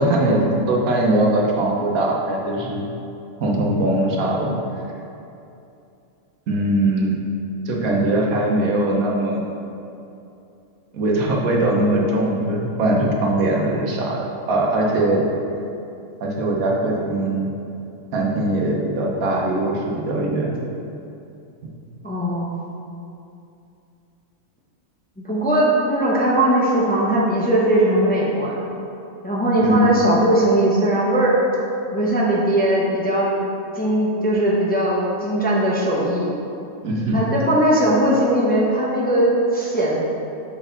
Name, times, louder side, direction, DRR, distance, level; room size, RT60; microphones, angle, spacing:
voice 1, 0.0-2.8 3.4-4.5 6.5-7.1 7.6-9.4 10.9-15.2 16.2-17.5 18.1-20.5 29.6-30.0 36.8-37.2, right 1 dB, 85° right, -1 dB, 1.3 m, -21 dB
voice 2, 22.0-22.6 25.2-28.7 29.2-31.3 31.9-33.3 33.7-36.3 37.1-40.0, right 1 dB, 10° left, -6 dB, 0.6 m, -19 dB
6.9 x 4.1 x 3.9 m, 2.7 s
omnidirectional pair, 1.4 m